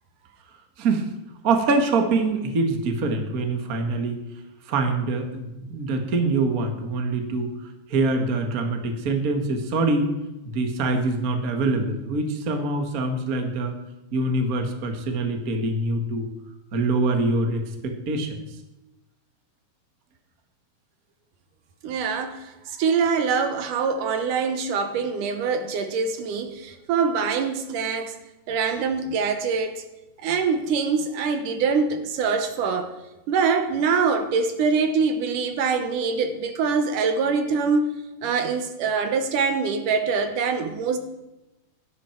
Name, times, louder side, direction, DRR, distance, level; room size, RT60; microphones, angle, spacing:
voice 1, 0.8-1.1 1.4-4.2 4.6-7.5 7.9-10.1 10.4-13.8 14.1-16.3 16.7-18.4, right 3 dB, 35° right, 4 dB, 1.5 m, -24 dB
voice 2, 21.8-28.2 28.5-29.8 30.2-32.9 33.3-37.9 38.2-41.0, right 5 dB, 75° right, 8 dB, 2.7 m, -24 dB
16.5 x 12.5 x 4.6 m, 1.0 s
omnidirectional pair, 3.7 m